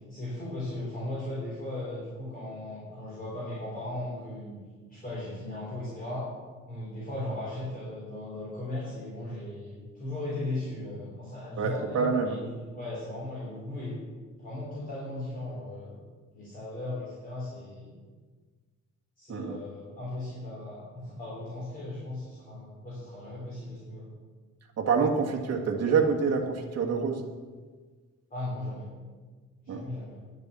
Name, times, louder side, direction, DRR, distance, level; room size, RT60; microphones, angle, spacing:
voice 1, 0.1-4.6 4.9-6.3 6.7-14.0 14.4-16.0 16.3-18.0 19.2-24.1 28.3-28.9 29.6-30.2, left 1 dB, 30° left, -8 dB, 3.5 m, -37 dB
voice 2, 11.6-12.4 19.3-19.6 24.8-27.2 29.7-29.8, right 5 dB, 55° right, 1 dB, 1.7 m, -26 dB
10.5 x 6.8 x 8.0 m, 1.4 s
wide cardioid pair, 170°, 30 cm